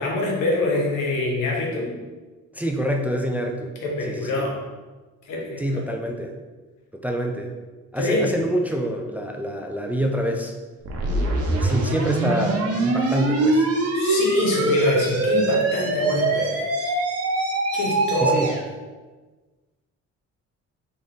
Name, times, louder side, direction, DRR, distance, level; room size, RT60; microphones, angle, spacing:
voice 1, 0.0-1.9 3.8-4.6 5.2-5.9 8.0-8.3 13.9-17.0 17.7-18.5, left 2 dB, 85° left, -1 dB, 1.2 m, -25 dB
voice 2, 2.5-3.7 4.1-4.4 5.6-6.3 6.9-7.5 7.9-10.5 11.0-13.7 18.2-18.5, equal, 5° right, 2 dB, 0.4 m, -26 dB
sound 1, 10.9-18.6, right 2 dB, 55° right, 0.9 m, -23 dB
3.9 x 3.6 x 3.7 m, 1.3 s
cardioid pair, 90°, 30 cm